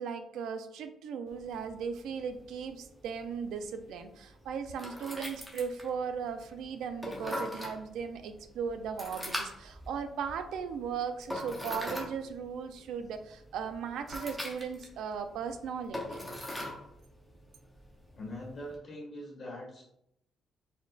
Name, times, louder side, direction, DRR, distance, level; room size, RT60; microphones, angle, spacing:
voice 1, 0.0-16.2, right 6 dB, 85° right, 8 dB, 0.4 m, -37 dB
sound 1, 1.3-18.8, left 1 dB, ahead, 0.7 m, -43 dB
voice 2, 18.1-19.8, left 1 dB, 35° left, -3 dB, 1.5 m, -42 dB
4.2 x 3.8 x 2.4 m, 0.76 s
cardioid pair, 155°, 0 cm